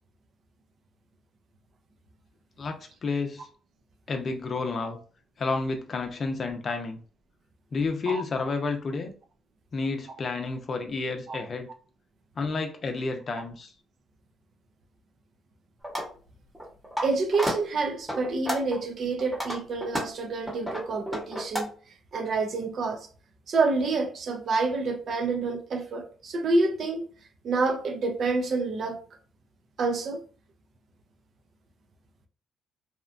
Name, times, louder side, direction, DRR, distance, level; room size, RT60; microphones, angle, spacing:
voice 1, 2.6-3.5 4.1-5.0 5.4-7.0 7.7-9.1 9.7-11.7 12.4-13.7, left 3 dB, 45° left, 0.5 m, -30 dB
sound 1, 15.8-16.1 16.5-17.0 17.3-17.6 18.1-18.8 19.2-21.6, equal, 5° right, 1.0 m, -31 dB
voice 2, 17.0-21.7 22.1-23.1 23.5-27.1 27.4-29.0 29.8-30.2, right 3 dB, 60° right, 0.5 m, -28 dB
2.8 x 2.2 x 2.5 m
cardioid pair, 90°, 0 cm